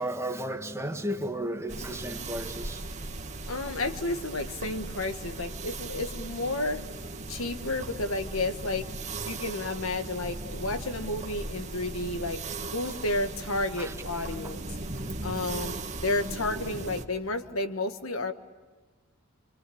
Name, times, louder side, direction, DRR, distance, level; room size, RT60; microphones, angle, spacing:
voice 1, 0.0-2.8 13.8-13.9 14.4-14.5, right 1 dB, 15° right, 5 dB, 1.6 m, -33 dB
sound 1, 1.7-17.0, right 2 dB, 35° right, 1.6 m, -38 dB
voice 2, 3.5-6.9 7.3-8.9 9.2-14.6 15.2-15.8 16.0-18.3, left 2 dB, 80° left, 8 dB, 1.5 m, -31 dB
27.0 x 24.5 x 8.6 m, 1.4 s
head